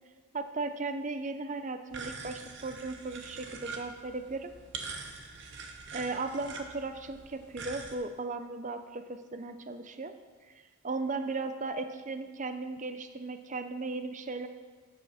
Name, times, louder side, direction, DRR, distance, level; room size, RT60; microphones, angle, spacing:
voice 1, 0.3-4.5 5.9-10.1 10.5-14.5, right 3 dB, 35° right, 9 dB, 0.6 m, -36 dB
sound 1, 1.9-7.9, right 4 dB, 55° right, 1.0 m, -44 dB
12.0 x 8.3 x 4.2 m, 1.4 s
head